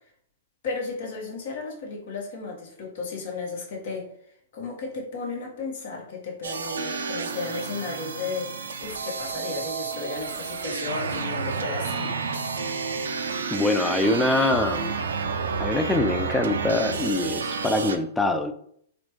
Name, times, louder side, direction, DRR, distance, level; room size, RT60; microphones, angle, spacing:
voice 1, 0.6-4.1 4.5-12.1, left 4 dB, 65° left, -1 dB, 1.3 m, -34 dB
sound 1, 6.4-18.0, right 5 dB, 85° right, 0.4 m, -30 dB
voice 2, 13.5-14.9 15.6-18.5, left 2 dB, 10° left, 8 dB, 0.3 m, -24 dB
4.2 x 2.3 x 3.0 m, 0.67 s
hypercardioid pair, 125°, 0 cm